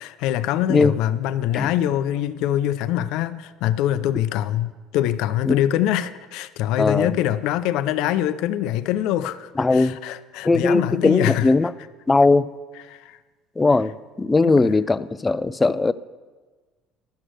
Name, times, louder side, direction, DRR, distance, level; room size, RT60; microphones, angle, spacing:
voice 1, 0.0-11.5 12.9-13.2 14.4-14.7, left 12 dB, 75° left, 0.5 m, -24 dB
voice 2, 6.8-7.1 9.6-10.0 10.4-11.7 12.1-12.5 13.6-15.9, left 3 dB, 15° left, 0.4 m, -19 dB
11.5 x 6.4 x 7.6 m
supercardioid pair, 100°, 0 cm